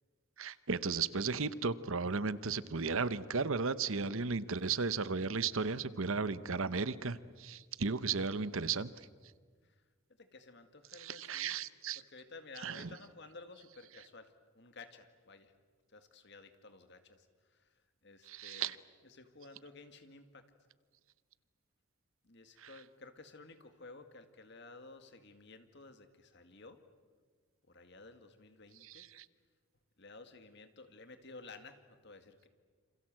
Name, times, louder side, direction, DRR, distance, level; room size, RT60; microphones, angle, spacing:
voice 1, 0.4-8.9 11.0-12.0 12.6-12.9 18.3-18.8 22.6-22.7 28.8-29.2, right 4 dB, 70° right, 15 dB, 0.9 m, -35 dB
voice 2, 10.2-11.6 11.9-15.5 15.9-18.8 19.0-20.4 22.2-26.8 27.7-29.1 30.0-32.5, left 3 dB, 50° left, 8 dB, 2.0 m, -54 dB
28.5 x 26.5 x 7.6 m, 1.5 s
head